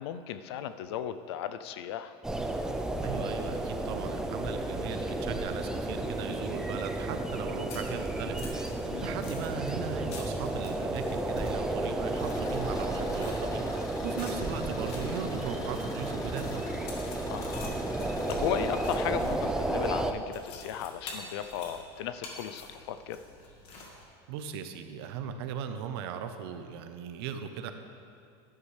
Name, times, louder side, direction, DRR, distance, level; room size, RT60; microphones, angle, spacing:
voice 1, 0.0-2.1 8.8-9.2 17.3-17.8 18.3-23.2, left 10 dB, 80° left, 11 dB, 0.5 m, -36 dB
sound 1, 2.2-20.1, right 2 dB, 5° right, 0.5 m, -32 dB
voice 2, 3.0-8.8 9.0-16.7 24.3-27.7, right 7 dB, 75° right, 8 dB, 0.8 m, -38 dB
sound 2, 7.4-24.0, left 2 dB, 50° left, 1.7 m, -49 dB
Car / Engine, 12.0-19.1, left 3 dB, 25° left, 0.8 m, -45 dB
11.0 x 9.7 x 3.3 m, 2.3 s
supercardioid pair, 130°, 13 cm